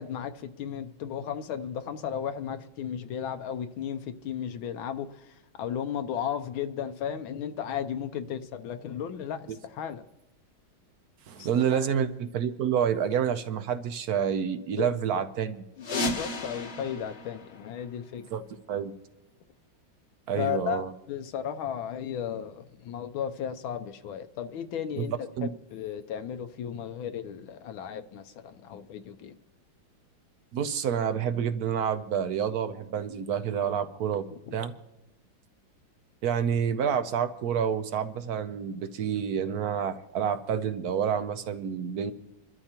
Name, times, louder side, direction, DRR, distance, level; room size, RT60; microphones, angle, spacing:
voice 1, 0.0-10.0 11.4-11.9 14.8-15.0 15.8-18.3 20.4-20.8 21.1-25.1 25.4-29.4 34.3-34.6, left 8 dB, 80° left, 1.5 m, -35 dB
voice 2, 11.3-15.6 18.3-18.4 18.7-18.9 20.3-20.9 25.0-25.1 25.4-25.5 30.5-34.7 36.2-42.1, right 8 dB, 70° right, 0.9 m, -28 dB
sound 1, 15.8-18.4, left 1 dB, 45° left, 0.9 m, -34 dB
27.0 x 12.5 x 2.9 m
omnidirectional pair, 2.2 m